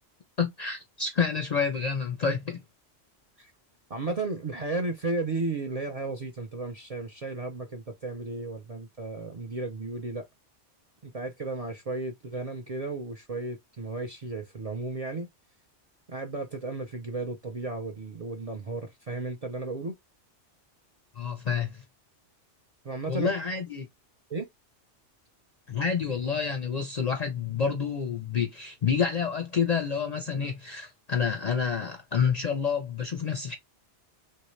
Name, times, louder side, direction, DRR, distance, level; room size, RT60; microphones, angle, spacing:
voice 1, 0.4-2.6 21.2-21.8 23.1-23.9 25.7-33.5, left 6 dB, 50° left, 0.5 m, -28 dB
voice 2, 3.9-10.3 11.0-15.3 16.1-19.9 22.8-23.3 24.3-24.5, right 3 dB, 45° right, 0.5 m, -34 dB
3.1 x 2.7 x 3.1 m
omnidirectional pair, 1.2 m